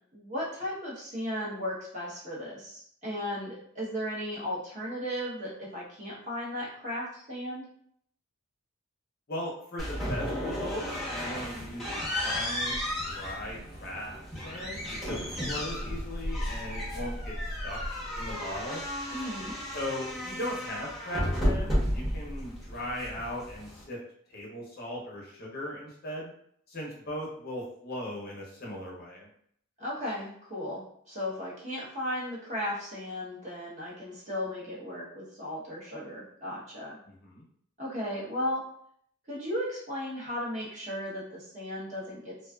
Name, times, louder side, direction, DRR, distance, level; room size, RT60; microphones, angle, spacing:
voice 1, 0.1-7.6 19.1-19.5 29.8-37.0 37.8-38.6 39.3-42.4, left 1 dB, 35° right, -6 dB, 0.8 m, -35 dB
voice 2, 9.3-14.8 15.0-17.8 18.1-18.8 19.7-24.0 24.3-26.3 26.7-29.3 37.0-37.4, left 1 dB, 45° left, -3 dB, 0.6 m, -38 dB
sound 1, 9.8-23.8, equal, ahead, 0.7 m, -33 dB
2.5 x 2.3 x 2.2 m, 0.66 s
head